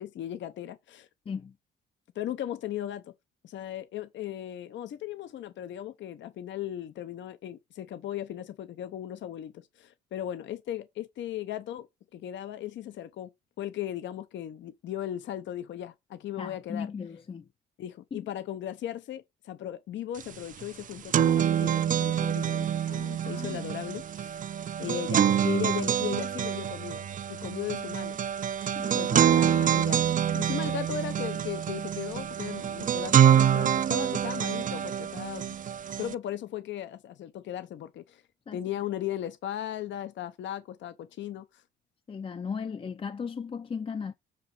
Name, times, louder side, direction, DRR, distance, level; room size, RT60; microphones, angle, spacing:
voice 1, 0.0-1.1 2.1-3.1 3.4-11.9 12.1-13.3 13.6-16.9 17.8-24.4 24.8-28.2 28.8-35.4 36.0-38.2 38.5-41.6, left 11 dB, 70° left, 0.7 m, -37 dB
voice 2, 16.4-17.5 18.1-18.3 23.2-23.6 28.6-28.9 38.5-38.6 42.1-44.1, left 6 dB, 25° left, 0.4 m, -36 dB
sound 1, 20.2-20.3 20.6-36.1, right 9 dB, 40° right, 0.5 m, -26 dB
7.4 x 2.8 x 5.8 m
cardioid pair, 90°, 20 cm